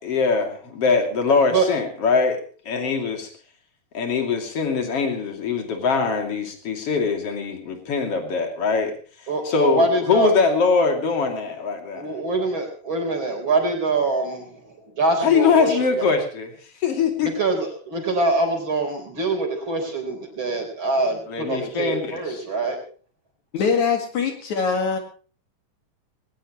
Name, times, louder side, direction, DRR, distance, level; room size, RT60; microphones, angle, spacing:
voice 1, 0.0-2.4 2.7-3.3 3.9-8.9 9.5-12.1 15.2-16.5 16.8-17.3 21.3-22.2, left 5 dB, 45° left, 4 dB, 3.7 m, -22 dB
voice 2, 9.3-10.3 11.9-16.0 17.2-22.8, right 2 dB, 35° right, 3 dB, 4.8 m, -24 dB
voice 3, 23.5-25.0, left 5 dB, 65° left, 4 dB, 3.3 m, -22 dB
20.5 x 19.5 x 3.1 m, 0.39 s
omnidirectional pair, 3.7 m